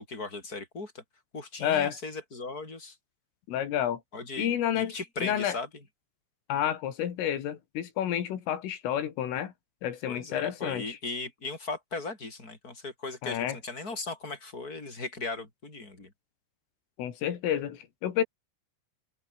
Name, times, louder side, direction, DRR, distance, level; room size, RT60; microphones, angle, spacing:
voice 1, 0.1-1.0 1.3-3.0 4.1-5.7 10.1-16.1, left 3 dB, 15° left, 6.9 m, -38 dB
voice 2, 1.6-2.0 3.5-4.0 4.4-4.9 5.2-5.6 6.5-9.5 9.8-11.0 13.2-13.6 17.0-18.2, left 10 dB, 90° left, 5.3 m, -30 dB
omnidirectional pair, 5.6 m